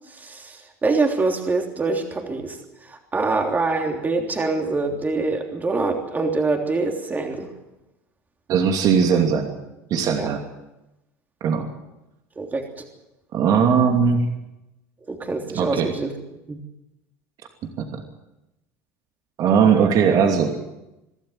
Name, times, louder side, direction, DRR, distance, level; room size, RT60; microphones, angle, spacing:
voice 1, 0.1-2.6 2.9-7.5 10.1-10.3 12.4-12.6 15.1-16.1 16.5-16.6, right 3 dB, 20° right, 3 dB, 3.3 m, -24 dB
voice 2, 8.5-9.5 9.9-10.4 11.4-11.7 13.3-14.3 15.5-15.9 17.8-17.9 19.4-20.6, right 6 dB, 50° right, 4 dB, 2.8 m, -19 dB
24.5 x 12.5 x 9.2 m, 0.94 s
supercardioid pair, 95°, 8 cm